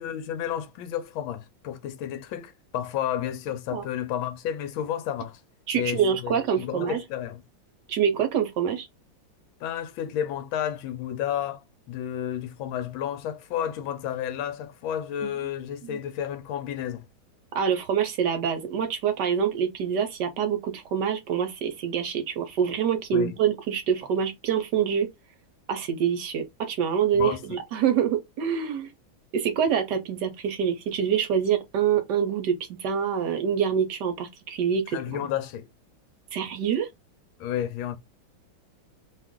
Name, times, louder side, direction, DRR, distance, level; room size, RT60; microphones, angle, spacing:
voice 1, 0.0-5.4 5.7-7.4 9.6-17.0 23.1-23.3 27.1-27.6 34.9-35.7 37.4-38.0, left 10 dB, 85° left, 1.4 m, -31 dB
voice 2, 5.7-7.0 7.9-8.9 15.2-15.3 15.8-16.0 17.5-25.1 25.7-28.9 29.3-35.2 36.3-36.9, right 8 dB, 70° right, 1.1 m, -26 dB
3.1 x 2.4 x 3.5 m
omnidirectional pair, 2.2 m